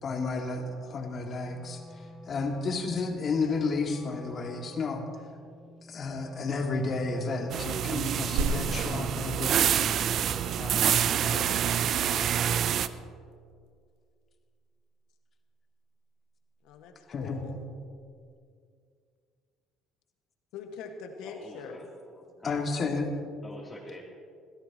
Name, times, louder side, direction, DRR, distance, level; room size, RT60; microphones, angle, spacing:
voice 1, 0.0-5.0 5.9-10.1 10.6-10.9 17.1-17.4 22.4-23.1, left 3 dB, 45° left, 3 dB, 2.3 m, -32 dB
voice 2, 0.5-1.0 3.4-3.6 11.1-12.4 16.6-17.6 20.5-21.8, left 5 dB, 65° left, 5 dB, 1.7 m, -44 dB
Wind instrument woodwind instrument, 1.4-8.1, left 1 dB, 35° right, 4.1 m, -50 dB
sound 1, 7.5-12.9, right 9 dB, 55° right, 0.6 m, -27 dB
sound 2, 13.1-18.4, right 4 dB, 70° right, 1.4 m, -40 dB
voice 3, 21.2-22.6 23.4-24.0, left 1 dB, 15° left, -5 dB, 3.2 m, -46 dB
22.5 x 16.0 x 3.1 m, 2.3 s
hypercardioid pair, 55°, 0 cm